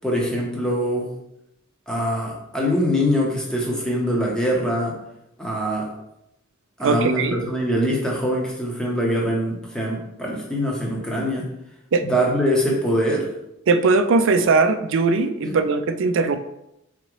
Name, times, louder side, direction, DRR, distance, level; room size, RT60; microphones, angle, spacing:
voice 1, 0.0-1.1 1.9-5.0 5.4-5.9 6.8-11.5 12.0-13.3 15.4-15.6, equal, 5° left, -3 dB, 0.9 m, -23 dB
voice 2, 6.8-7.4 11.9-12.1 13.7-16.4, right 4 dB, 60° right, 9 dB, 0.4 m, -19 dB
4.2 x 3.7 x 3.1 m, 0.83 s
head